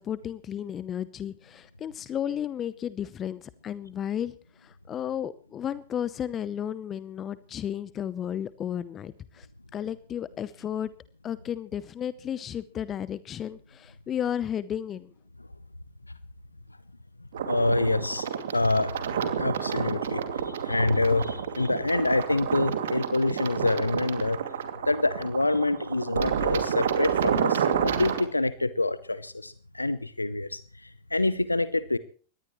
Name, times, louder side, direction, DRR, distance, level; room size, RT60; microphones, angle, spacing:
voice 1, 0.0-9.5 9.7-10.9 11.2-15.1, left 9 dB, 30° left, 18 dB, 0.8 m, -33 dB
sound 1, 17.3-28.2, right 8 dB, 65° right, 2.5 m, -29 dB
voice 2, 17.5-18.3 18.5-19.0 19.4-24.4 24.8-32.0, left 2 dB, 90° left, 16 dB, 0.7 m, -26 dB
22.5 x 18.5 x 3.1 m, 0.40 s
figure-of-eight pair, 95°, 0 cm